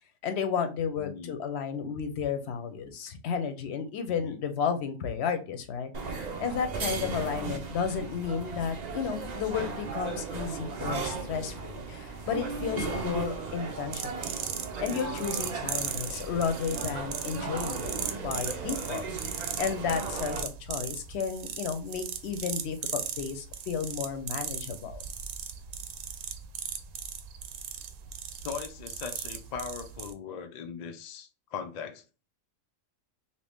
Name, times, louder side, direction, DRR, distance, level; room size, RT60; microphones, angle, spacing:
voice 1, 0.2-14.3 14.8-19.1 19.3-25.0, left 6 dB, 65° left, 0.8 m, -33 dB
voice 2, 1.0-1.4 4.1-4.4 7.0-7.4 28.4-32.0, left 6 dB, 85° left, 0.3 m, -39 dB
sound 1, 5.9-20.4, right 4 dB, 55° right, 0.5 m, -36 dB
sound 2, 13.9-30.1, right 8 dB, 75° right, 0.9 m, -38 dB
2.9 x 2.7 x 3.4 m
omnidirectional pair, 1.4 m